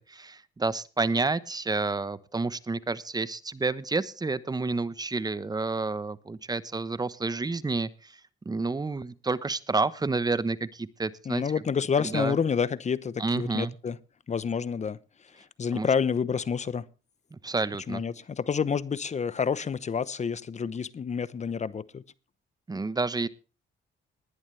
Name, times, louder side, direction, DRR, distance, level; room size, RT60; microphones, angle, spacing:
voice 1, 0.0-8.2 8.4-11.4 12.0-12.4 13.2-13.7 15.7-15.9 17.3-18.0 22.7-23.3, right 3 dB, 20° right, 1.0 m, -29 dB
voice 2, 11.3-14.0 14.3-15.0 15.4-16.9 17.9-22.0, left 6 dB, 35° left, 0.8 m, -29 dB
19.5 x 10.5 x 3.3 m
cardioid pair, 90°, 20 cm